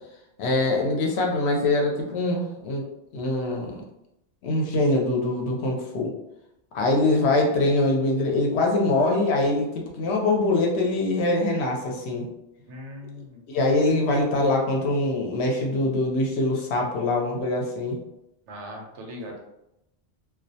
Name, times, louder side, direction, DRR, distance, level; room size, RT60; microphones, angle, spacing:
voice 1, 0.4-2.8 3.1-3.8 4.4-6.1 6.7-12.3 13.5-18.0, left 2 dB, 70° left, 0 dB, 0.8 m, -23 dB
voice 2, 12.7-13.4 18.5-19.4, left 1 dB, 85° right, 1 dB, 0.9 m, -39 dB
2.3 x 2.1 x 2.6 m, 0.84 s
omnidirectional pair, 1.2 m